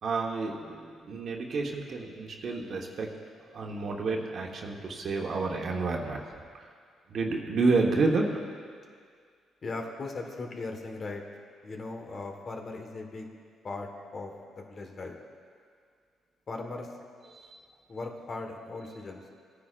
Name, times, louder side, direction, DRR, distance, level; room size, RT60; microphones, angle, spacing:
voice 1, 0.0-3.1 3.5-6.7 7.1-8.2 17.3-17.6, right 3 dB, 55° right, 0 dB, 1.3 m, -30 dB
voice 2, 9.6-11.2 11.6-13.3 13.6-15.2 16.5-16.9 17.9-19.2, left 3 dB, 40° left, 2 dB, 1.4 m, -38 dB
19.0 x 9.9 x 2.5 m, 2.1 s
cardioid pair, 90°, 0 cm